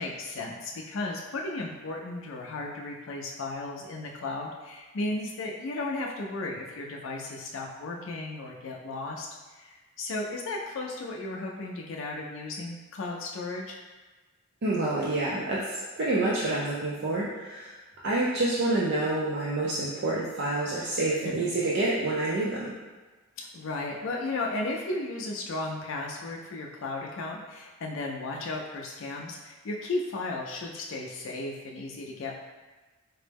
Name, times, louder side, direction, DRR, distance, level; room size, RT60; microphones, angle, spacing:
voice 1, 0.0-13.8 21.2-21.5 23.4-32.3, left 2 dB, 65° left, -1 dB, 0.4 m, -35 dB
voice 2, 14.6-17.7 18.0-22.7, right 2 dB, 55° right, -6 dB, 0.5 m, -28 dB
4.3 x 2.0 x 3.3 m, 1.3 s
head